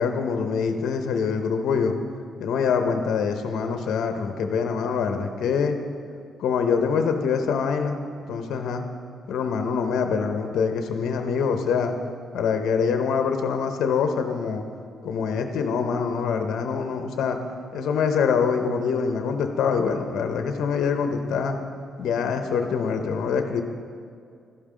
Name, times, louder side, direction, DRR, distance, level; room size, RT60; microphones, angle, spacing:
voice 1, 0.0-1.9 2.4-5.8 6.4-8.0 8.3-8.8 9.3-12.0 12.3-14.6 15.0-17.4 17.7-21.6 22.0-23.6, left 6 dB, 75° left, 6 dB, 0.7 m, -24 dB
12.5 x 5.5 x 5.0 m, 2.3 s
cardioid pair, 90°, 0 cm